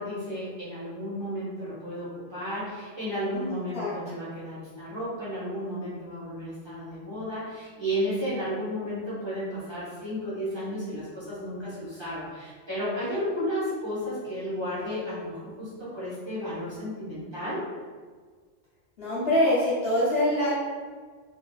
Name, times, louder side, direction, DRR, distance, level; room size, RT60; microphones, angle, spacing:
voice 1, 0.0-17.6, equal, 25° right, -12 dB, 1.2 m, -33 dB
voice 2, 3.3-3.9 19.0-20.5, left 1 dB, 55° left, -9 dB, 1.0 m, -25 dB
3.1 x 2.5 x 2.3 m, 1.5 s
omnidirectional pair, 1.3 m